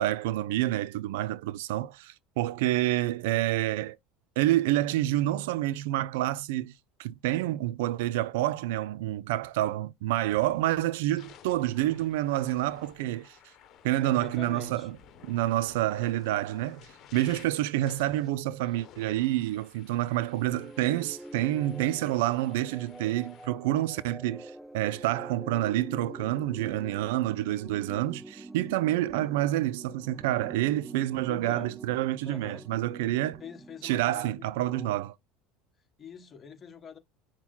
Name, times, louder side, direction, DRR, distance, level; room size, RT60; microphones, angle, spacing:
voice 1, 0.0-4.0 4.4-6.7 7.0-13.4 13.8-15.0 15.2-33.4 33.8-35.1, right 15 dB, 80° right, 0.4 m, -28 dB
sound 1, 10.3-10.5 11.0-23.5, left 8 dB, 50° left, 1.2 m, -55 dB
voice 2, 14.0-14.9 31.3-31.7 32.2-32.6 33.4-35.0 36.0-37.0, left 6 dB, 30° left, 1.3 m, -44 dB
sound 2, 20.5-34.2, right 1 dB, 5° right, 0.4 m, -46 dB
6.1 x 2.1 x 3.7 m
supercardioid pair, 100°, 0 cm